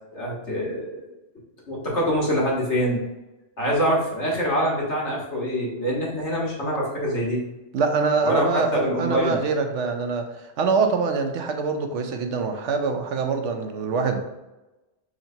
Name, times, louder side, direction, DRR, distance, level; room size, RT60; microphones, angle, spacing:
voice 1, 0.1-1.1 1.7-3.0 3.6-7.4 8.2-9.4, equal, 75° left, -4 dB, 1.7 m, -25 dB
voice 2, 7.7-14.2, right 4 dB, 80° right, 5 dB, 1.0 m, -24 dB
6.1 x 2.9 x 2.7 m, 1.0 s
omnidirectional pair, 1.2 m